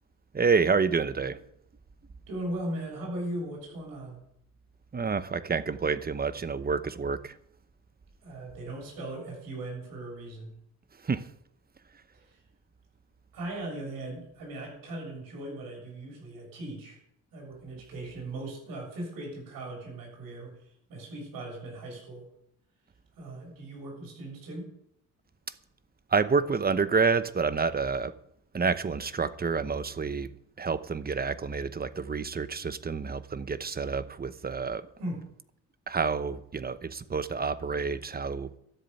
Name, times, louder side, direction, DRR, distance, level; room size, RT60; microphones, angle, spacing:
voice 1, 0.3-1.4 4.9-7.4 11.0-11.3 26.1-28.1 28.5-30.3 30.6-34.9 35.9-38.5, right 5 dB, 25° right, 1.0 m, -28 dB
voice 2, 2.3-4.3 8.2-10.5 12.1-12.4 13.3-17.0 17.3-20.6 20.9-22.3 23.2-24.7 35.0-35.2, right 1 dB, 90° right, 7.2 m, -38 dB
13.0 x 7.6 x 9.5 m
cardioid pair, 80°, 34 cm